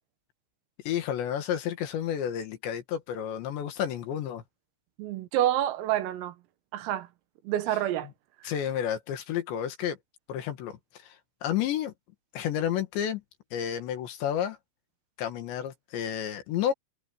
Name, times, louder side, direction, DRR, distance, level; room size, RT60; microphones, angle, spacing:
voice 1, 0.9-4.4 8.4-10.0 10.3-11.2 11.4-11.9 12.3-13.2 13.5-14.6 15.2-16.7, left 10 dB, 65° left, 3.7 m, -31 dB
voice 2, 5.0-6.4 6.7-7.1 7.5-8.1 8.4-8.5, right 12 dB, 85° right, 4.2 m, -28 dB
omnidirectional pair, 5.8 m